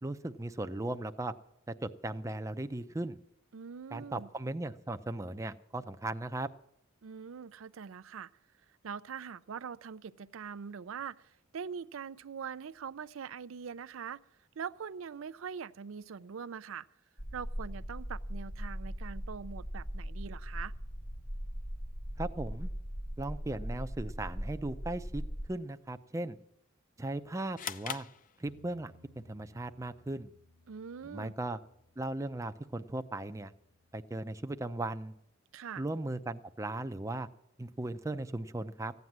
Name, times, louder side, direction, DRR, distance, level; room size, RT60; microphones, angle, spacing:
voice 1, 0.0-1.3 1.7-3.2 3.9-6.5 22.2-22.7 23.2-25.2 25.5-26.4 27.0-28.1 28.4-30.3 31.0-31.6 32.0-33.5 33.9-35.1 35.8-37.3 37.6-38.9, right 2 dB, 15° right, 9 dB, 0.5 m, -37 dB
voice 2, 3.5-4.3 7.0-8.3 8.8-14.2 14.6-16.9 17.3-20.7 30.7-31.3 35.5-35.8, right 6 dB, 75° right, 13 dB, 0.4 m, -43 dB
sound 1, 17.2-25.5, equal, 20° left, 0.9 m, -39 dB
sound 2, 27.6-29.0, left 8 dB, 40° left, 0.6 m, -41 dB
Bass guitar, 28.5-34.7, left 1 dB, 85° left, 2.6 m, -65 dB
15.5 x 9.5 x 7.3 m, 0.77 s
head